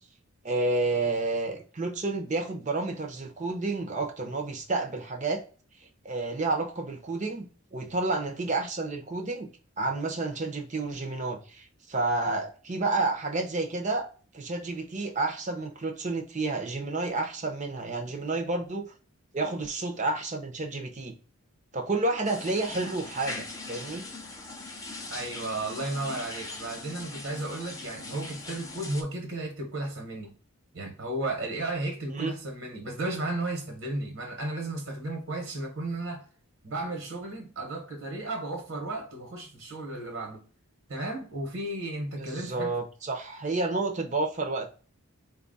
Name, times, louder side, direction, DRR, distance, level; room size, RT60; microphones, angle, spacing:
voice 1, 0.4-5.4 6.0-9.5 9.8-14.1 14.3-18.9 19.3-21.1 21.7-24.0 32.1-32.3 42.2-44.7, right 3 dB, 35° right, 0.6 m, -30 dB
sound 1, 22.2-29.0, left 2 dB, 15° left, 0.5 m, -40 dB
voice 2, 25.1-30.3 30.7-36.2 36.6-40.4 40.9-42.8, right 2 dB, 70° right, 1.1 m, -34 dB
4.0 x 2.3 x 3.9 m
head